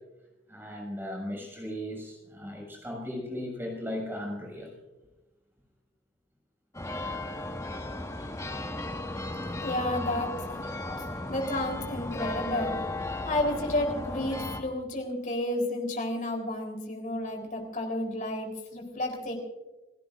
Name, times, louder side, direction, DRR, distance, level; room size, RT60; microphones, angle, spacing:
voice 1, 0.5-4.7 8.2-8.3, equal, 15° right, 0 dB, 6.7 m, -37 dB
sound 1, 6.7-14.6, left 2 dB, 20° left, 1.6 m, -35 dB
voice 2, 9.6-10.6 11.3-12.8 13.2-19.3, left 1 dB, 45° left, 2 dB, 3.9 m, -31 dB
30.0 x 17.0 x 2.6 m, 1.1 s
head